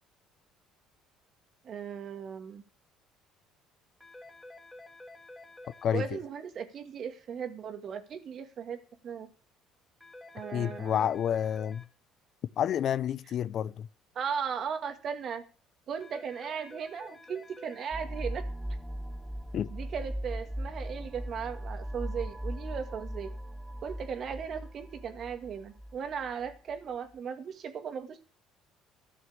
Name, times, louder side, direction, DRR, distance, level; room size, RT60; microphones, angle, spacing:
voice 1, 1.6-2.6 5.9-9.3 10.3-11.0 14.2-15.4 15.9-18.4 19.7-23.3 23.8-28.2, right 7 dB, 50° right, 2.1 m, -37 dB
sound 1, 4.0-5.8 10.0-11.8 16.0-17.8, left 2 dB, 5° left, 2.0 m, -50 dB
voice 2, 5.8-6.2 10.5-11.8 12.6-13.9 19.5-19.7, left 9 dB, 55° left, 0.6 m, -29 dB
sound 2, 17.9-26.6, equal, 10° right, 1.2 m, -38 dB
14.0 x 6.3 x 8.7 m
supercardioid pair, 95°, 0 cm